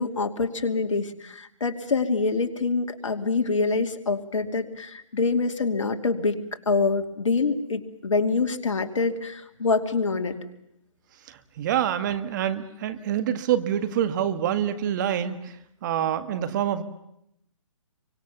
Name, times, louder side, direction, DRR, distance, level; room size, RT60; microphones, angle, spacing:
voice 1, 0.0-6.4 6.7-10.4, left 4 dB, 70° left, 7 dB, 2.7 m, -25 dB
voice 2, 11.3-15.6 15.8-16.8, right 10 dB, 35° right, 11 dB, 1.8 m, -26 dB
28.5 x 24.0 x 7.1 m, 0.76 s
hypercardioid pair, 145°, 17 cm